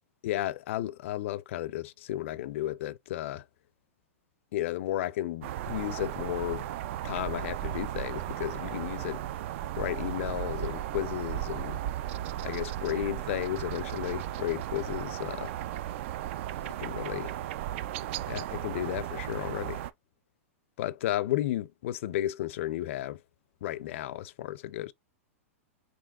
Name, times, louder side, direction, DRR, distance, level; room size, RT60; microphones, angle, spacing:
voice 1, 0.2-3.4 4.5-6.7 7.0-9.2 9.8-11.8 12.4-15.5 16.8-17.4 18.3-19.8 20.8-23.2 23.6-24.9, left 14 dB, 60° left, 0.4 m, -33 dB
sound 1, 5.4-19.9, right 12 dB, 55° right, 0.4 m, -35 dB
5.3 x 3.1 x 2.3 m
hypercardioid pair, 110°, 8 cm